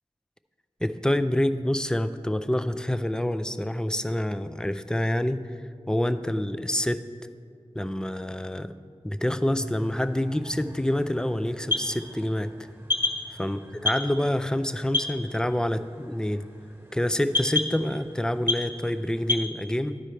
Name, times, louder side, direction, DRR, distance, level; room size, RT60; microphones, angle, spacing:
voice 1, 0.8-5.5 5.9-7.0 7.7-8.7 9.0-12.5 13.4-16.5 16.9-20.0, left 1 dB, 5° left, 11 dB, 0.4 m, -27 dB
sound 1, 9.5-19.5, left 3 dB, 20° right, 1.5 m, -33 dB
11.5 x 4.9 x 4.4 m, 2.2 s
wide cardioid pair, 45°, 11 cm